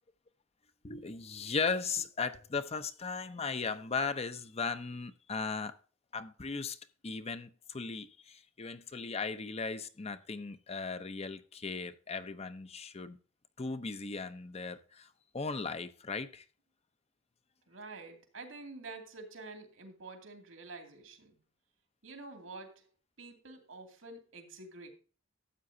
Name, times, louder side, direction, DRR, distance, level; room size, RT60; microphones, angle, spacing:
voice 1, 0.8-5.7 6.1-6.8 7.0-13.2 13.6-16.4, left 4 dB, 30° left, 0.7 m, -37 dB
voice 2, 17.7-21.4 22.0-22.9 23.2-24.9, right 3 dB, 80° right, 2.5 m, -48 dB
13.0 x 8.4 x 2.7 m
head